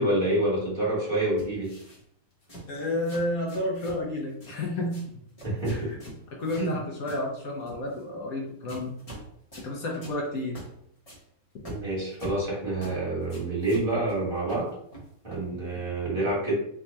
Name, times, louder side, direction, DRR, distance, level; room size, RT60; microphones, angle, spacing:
voice 1, 0.0-1.7 5.4-5.9 6.6-6.8 11.6-14.7 15.2-16.5, right 1 dB, 35° right, -6 dB, 1.5 m, -27 dB
sound 1, 1.4-2.0 2.4-2.7 3.0-4.0 4.3-4.6 4.9-5.1 5.4-6.7 7.1-7.3 7.7-8.0 8.7-9.3 9.5-9.7 10.0-10.2 10.6-10.7 11.1-11.2 11.7-12.5 12.8-13.0 13.2-14.2 14.5-15.5, right 1 dB, 25° left, 1.0 m, -43 dB
voice 2, 2.7-5.0 5.8-6.0 6.3-8.9 9.6-10.7, left 1 dB, 65° left, -2 dB, 1.2 m, -31 dB
3.5 x 2.4 x 4.1 m, 0.71 s
omnidirectional pair, 1.7 m